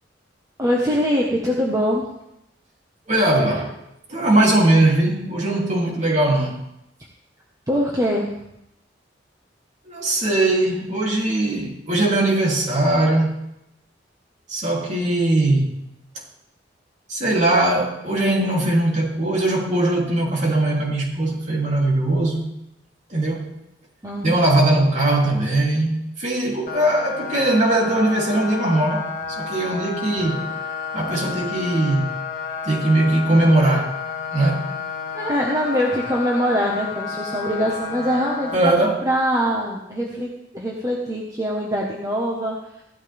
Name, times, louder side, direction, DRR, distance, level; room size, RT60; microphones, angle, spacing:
voice 1, 0.6-2.0 7.7-8.3 24.0-24.3 35.1-42.5, equal, 20° right, -3 dB, 1.4 m, -23 dB
voice 2, 3.1-3.7 4.1-6.6 9.8-13.4 14.5-15.7 17.1-22.5 23.1-23.5 24.2-29.1 29.4-30.5 30.9-32.1 32.6-34.0 34.3-34.7 38.5-39.0, right 1 dB, 40° right, -2 dB, 3.2 m, -20 dB
sound 1, 26.7-38.6, left 6 dB, 45° left, 1.8 m, -31 dB
16.5 x 12.5 x 3.6 m, 0.83 s
head